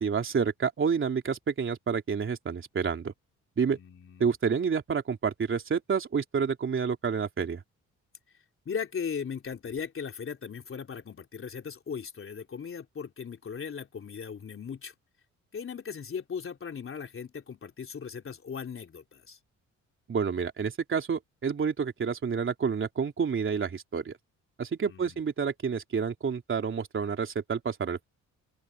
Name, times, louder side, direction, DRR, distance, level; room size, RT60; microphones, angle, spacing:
voice 1, 0.0-3.1 3.6-3.8 4.2-7.6 20.1-24.2 24.6-28.1, right 6 dB, 40° right, 3.4 m, -29 dB
voice 2, 3.7-4.3 8.7-14.9 15.5-19.4 24.9-25.2, left 6 dB, 45° left, 3.6 m, -38 dB
open air
cardioid pair, 90°, 30 cm